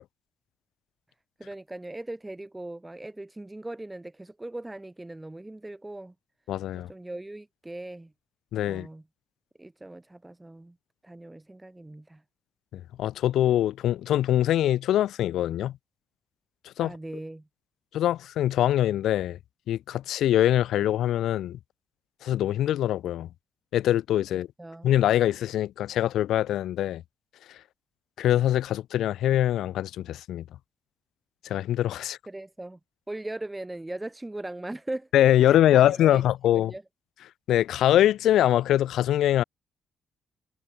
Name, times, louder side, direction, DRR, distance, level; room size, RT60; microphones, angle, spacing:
voice 1, 1.4-6.1 6.7-8.1 8.7-9.0 9.6-10.7 11.0-12.2 16.8-17.5 24.3-24.9 32.3-32.8 33.1-35.1 35.4-36.2 36.5-36.8, right 2 dB, 10° right, 6.9 m, -39 dB
voice 2, 6.5-6.9 8.5-8.9 12.7-15.7 16.8-16.9 17.9-19.4 19.7-21.6 22.2-23.3 23.7-24.5 24.8-27.0 28.2-30.4 31.4-32.2 35.1-36.7 37.5-39.4, left 12 dB, 80° left, 0.4 m, -23 dB
cardioid pair, 90°, 0 cm